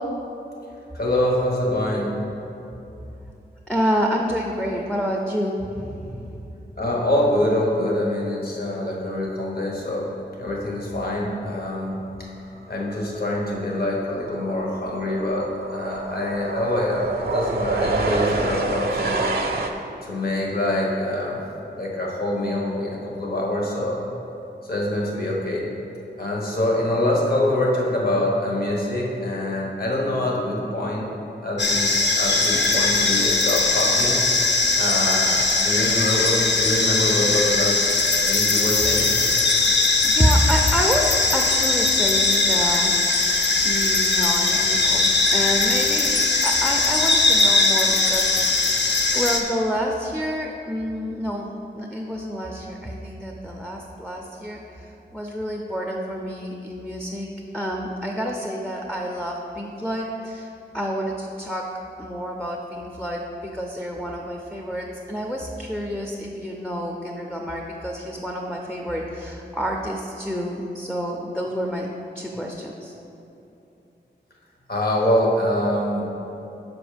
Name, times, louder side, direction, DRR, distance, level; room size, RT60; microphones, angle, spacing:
voice 1, 0.9-2.1 6.8-10.1 10.4-12.3 12.7-19.2 20.0-21.4 21.7-24.0 24.6-25.7 26.2-31.1 31.4-34.2 34.8-37.8 38.3-39.1 74.7-76.1, left 1 dB, 55° left, -2 dB, 1.3 m, -25 dB
voice 2, 3.7-6.5 40.1-42.9 43.6-48.8 49.1-61.7 62.0-71.9 72.1-72.9, equal, 5° left, 0 dB, 0.5 m, -28 dB
sound 1, 12.9-13.1 13.4-19.7, right 2 dB, 55° right, 0.6 m, -27 dB
sound 2, 31.6-49.4, left 3 dB, 75° left, 0.7 m, -20 dB
6.2 x 5.5 x 5.0 m, 2.9 s
wide cardioid pair, 110°, 18 cm